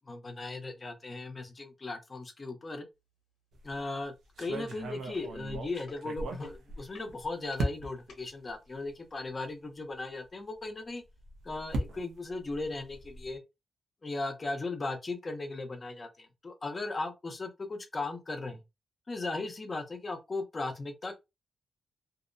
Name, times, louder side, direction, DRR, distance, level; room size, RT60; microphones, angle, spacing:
voice 1, 0.1-2.8 3.6-11.0 11.4-13.4 14.0-18.6 19.1-21.1, left 3 dB, 35° left, 0.7 m, -37 dB
sound 1, 3.5-3.8 4.4-7.1 7.6-8.1 8.9-9.0 9.3-9.4 11.0-13.3, right 1 dB, 90° right, 0.6 m, -37 dB
sound 2, 3.8-3.9 4.2-4.6 5.1-8.2 8.9-9.0, equal, 90° left, 0.9 m, -46 dB
2.7 x 2.0 x 2.6 m
cardioid pair, 85°, 0 cm